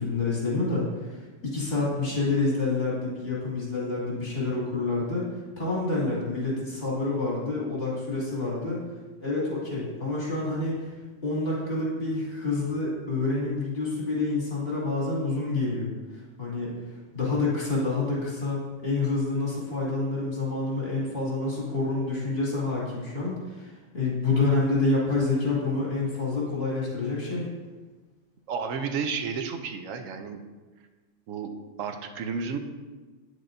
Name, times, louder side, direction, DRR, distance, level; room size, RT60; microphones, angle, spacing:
voice 1, 0.0-5.3 5.6-8.8 9.2-10.9 11.2-15.9 16.4-16.7 17.1-27.5, left 3 dB, 50° left, -6 dB, 2.7 m, -28 dB
voice 2, 28.5-30.4 31.3-32.6, right 5 dB, 85° right, 6 dB, 1.0 m, -32 dB
9.1 x 6.4 x 2.6 m, 1.3 s
omnidirectional pair, 1.3 m